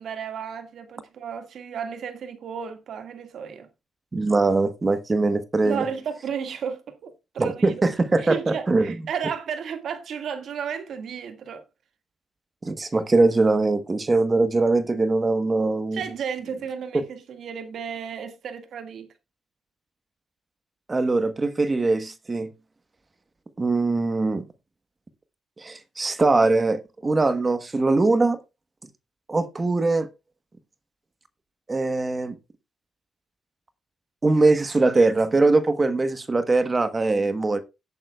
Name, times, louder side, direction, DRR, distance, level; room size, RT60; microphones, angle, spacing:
voice 1, 0.0-3.7 5.6-7.7 8.2-11.6 15.9-19.1, right 7 dB, 70° right, 1.8 m, -33 dB
voice 2, 4.1-5.8 7.4-8.9 12.6-16.0 20.9-22.5 23.6-24.4 25.6-28.4 29.3-30.1 31.7-32.3 34.2-37.6, right 3 dB, 25° right, 1.1 m, -22 dB
17.0 x 8.6 x 2.3 m
cardioid pair, 100°, 0 cm